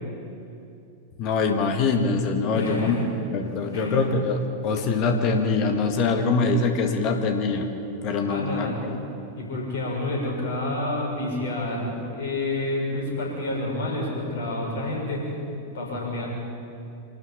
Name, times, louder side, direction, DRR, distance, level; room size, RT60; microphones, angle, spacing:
voice 1, 1.2-3.0 3.3-7.7 8.0-9.0, left 4 dB, 40° left, 5 dB, 1.9 m, -24 dB
voice 2, 2.5-3.1 3.7-4.1 8.2-8.8 9.4-15.4 15.7-16.3, left 1 dB, 60° left, -1 dB, 7.0 m, -29 dB
25.5 x 13.0 x 8.9 m, 2.7 s
figure-of-eight pair, 90°, 0 cm